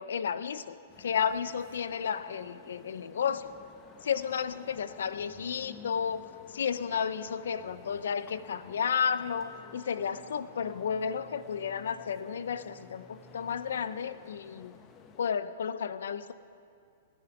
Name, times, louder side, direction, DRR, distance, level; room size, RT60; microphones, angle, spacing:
voice 1, 0.0-3.4 4.0-6.2 6.5-14.8 15.2-16.3, left 7 dB, 90° left, 14 dB, 0.7 m, -32 dB
sound 1, 0.9-15.3, left 6 dB, 25° left, 0.9 m, -53 dB
20.0 x 10.5 x 6.0 m, 2.3 s
hypercardioid pair, 155°, 0 cm